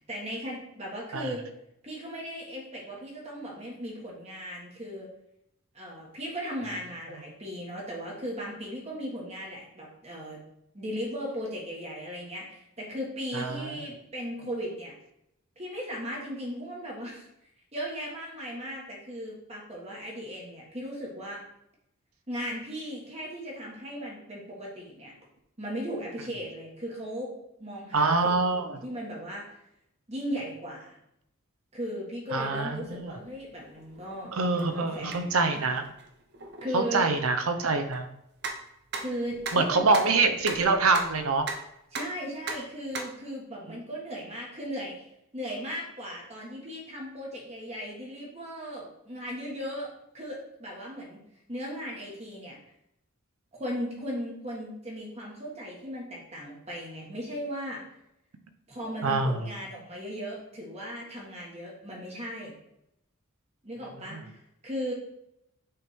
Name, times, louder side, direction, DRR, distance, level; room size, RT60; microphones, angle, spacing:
voice 1, 0.1-1.4 1.8-5.1 5.7-10.4 10.7-14.9 15.6-17.3 17.7-21.4 22.3-25.1 25.6-27.3 27.6-28.1 28.5-29.5 30.1-31.0 31.7-34.3 34.7-35.3 36.6-37.1 39.0-39.9 41.9-45.0 45.3-51.2 51.5-52.6 53.5-57.8 58.7-62.5 63.6-64.9, equal, 30° right, -3 dB, 1.5 m, -37 dB
voice 2, 13.3-13.8 27.9-28.8 32.3-33.2 34.3-35.8 36.7-38.1 39.5-41.5 59.0-59.5 64.1-64.2, right 3 dB, 80° right, 8 dB, 0.7 m, -25 dB
sound 1, 32.5-42.2 42.4-43.1, right 4 dB, 50° right, 0.9 m, -40 dB
6.6 x 3.5 x 4.4 m, 0.82 s
head